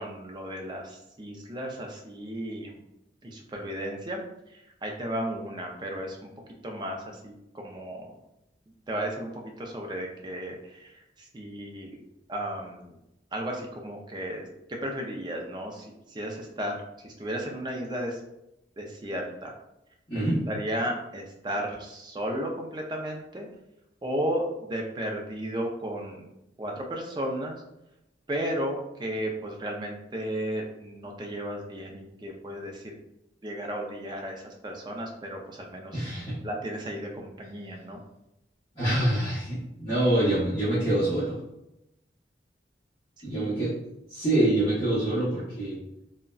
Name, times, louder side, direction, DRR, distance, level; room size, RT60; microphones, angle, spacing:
voice 1, 0.0-2.8 3.2-4.2 4.5-6.3 6.6-8.1 8.9-9.3 9.6-12.0 12.3-12.9 13.3-18.2 18.8-19.5 20.1-23.5 24.0-26.3 26.6-27.6 28.3-32.9 33.4-36.0 36.4-38.0 43.3-43.7, right 1 dB, 25° right, 1 dB, 0.4 m, -34 dB
voice 2, 20.1-20.4 35.9-36.4 38.7-41.4 43.2-43.7 44.1-45.8, right 1 dB, 30° left, -13 dB, 1.0 m, -25 dB
3.7 x 2.1 x 2.3 m, 0.87 s
head